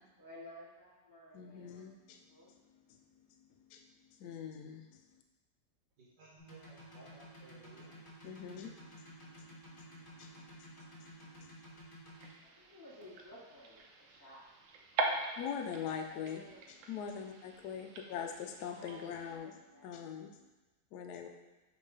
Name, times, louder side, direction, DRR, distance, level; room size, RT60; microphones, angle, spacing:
voice 1, 0.2-2.5 12.6-14.4 14.9-15.3 16.1-16.6 18.0-18.2 18.5-19.9 21.1-21.3, equal, 10° right, -9 dB, 1.6 m, -55 dB
voice 2, 1.3-2.2 3.7-3.8 4.2-4.9 8.2-8.7 10.2-10.3 11.4-11.5 15.4-16.4 16.9-19.5 19.8-20.3 20.9-21.3, left 7 dB, 70° left, 4 dB, 1.1 m, -42 dB
voice 3, 6.0-8.0, right 2 dB, 75° right, -7 dB, 1.9 m, -59 dB
sound 1, 6.4-12.3, left 1 dB, 30° left, 1.7 m, -53 dB
sound 2, 12.1-19.4, right 3 dB, 90° right, 1.5 m, -42 dB
5.4 x 3.8 x 4.8 m, 1.1 s
omnidirectional pair, 2.0 m